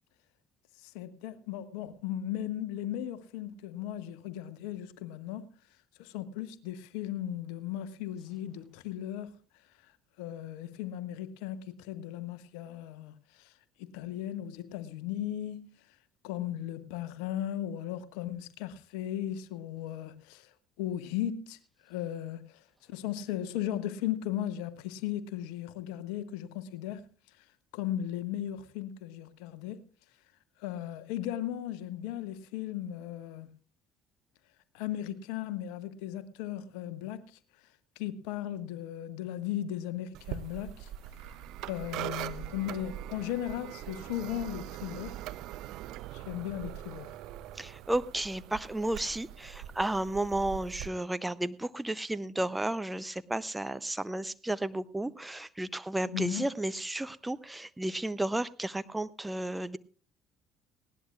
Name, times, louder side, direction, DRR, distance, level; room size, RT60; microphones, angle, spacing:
voice 1, 0.8-5.5 6.0-9.3 9.8-9.9 10.2-13.5 13.8-15.7 16.2-27.0 27.4-27.5 27.7-29.8 30.6-33.5 34.7-37.4 38.0-40.9 41.2-41.4 41.6-45.2 46.1-47.2 56.1-56.5, left 11 dB, 65° left, 0.9 m, -37 dB
sound 1, 40.1-50.9, right 13 dB, 60° right, 0.6 m, -42 dB
voice 2, 47.6-59.8, right 1 dB, 10° right, 0.6 m, -33 dB
19.0 x 17.0 x 2.5 m
figure-of-eight pair, 55°, 0 cm